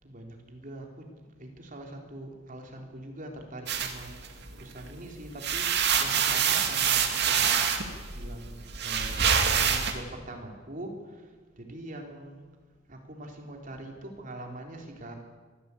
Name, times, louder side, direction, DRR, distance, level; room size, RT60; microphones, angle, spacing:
voice 1, 0.0-7.6 8.1-12.4 12.9-15.1, right 1 dB, 45° right, 2 dB, 3.7 m, -43 dB
sound 1, 3.7-4.9 5.2-9.9, right 7 dB, 60° right, 2.4 m, -26 dB
22.5 x 15.5 x 8.4 m, 1.4 s
head